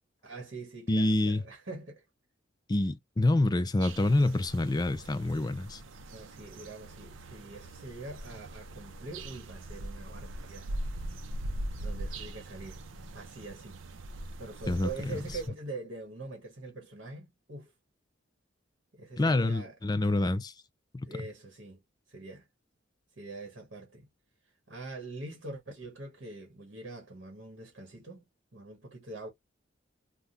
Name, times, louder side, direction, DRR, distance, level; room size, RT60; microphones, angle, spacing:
voice 1, 0.2-2.0 6.1-11.0 11.8-12.8 13.1-13.8 14.4-17.7 18.9-19.8 21.0-21.8 22.1-22.4 23.2-24.1 24.7-28.2 28.5-29.3, right 2 dB, 60° right, 1.3 m, -44 dB
voice 2, 0.9-1.4 2.7-5.8 14.7-14.9 19.2-20.5 20.9-21.1, left 2 dB, 20° left, 0.4 m, -27 dB
sound 1, 3.8-15.5, right 1 dB, 80° right, 0.6 m, -41 dB
3.5 x 2.2 x 2.6 m
head